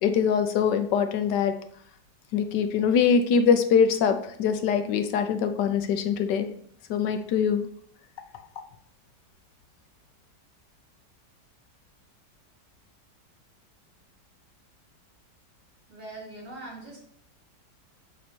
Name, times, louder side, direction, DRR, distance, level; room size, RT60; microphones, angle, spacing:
voice 1, 0.0-1.5 2.3-6.5 6.9-7.7, left 6 dB, 75° left, 8 dB, 1.2 m, -23 dB
voice 2, 15.9-17.0, right 2 dB, 65° right, -5 dB, 3.6 m, -41 dB
7.6 x 3.1 x 4.3 m, 0.63 s
omnidirectional pair, 1.9 m